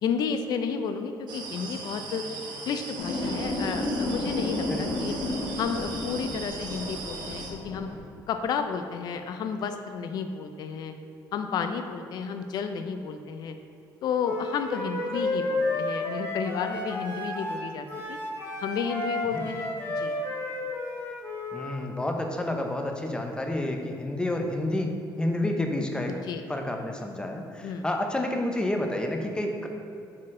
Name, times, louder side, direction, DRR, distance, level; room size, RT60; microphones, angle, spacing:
voice 1, 0.0-2.2 2.6-5.1 5.5-7.9 8.3-10.9 11.3-13.5 14.0-18.2 18.6-20.1 26.1-26.4 27.6-27.9, left 6 dB, 60° left, 7 dB, 0.4 m, -32 dB
sound 1, 1.3-7.5, right 4 dB, 65° right, 0.9 m, -39 dB
sound 2, 3.0-8.0, left 1 dB, 90° left, 1.2 m, -32 dB
voice 2, 4.7-5.2 19.3-19.4 21.5-26.2 26.5-29.7, left 1 dB, 10° left, 3 dB, 0.6 m, -30 dB
Wind instrument woodwind instrument, 14.2-21.8, left 2 dB, 30° left, 1.3 m, -32 dB
6.4 x 4.2 x 3.7 m, 2.6 s
cardioid pair, 120°, 8 cm